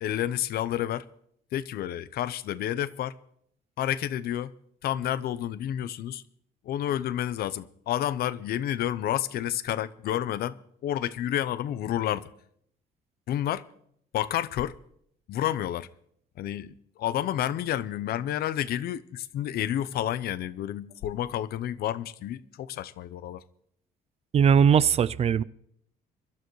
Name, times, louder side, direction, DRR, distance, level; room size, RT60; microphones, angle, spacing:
voice 1, 0.0-1.1 1.5-3.1 3.8-4.5 4.8-6.2 6.6-10.6 10.8-12.3 13.3-13.6 14.1-14.8 15.3-15.9 16.4-23.4, left 11 dB, 65° left, 0.7 m, -30 dB
voice 2, 24.3-25.4, right 7 dB, 40° right, 0.4 m, -20 dB
24.0 x 12.0 x 3.2 m
cardioid pair, 110°, 17 cm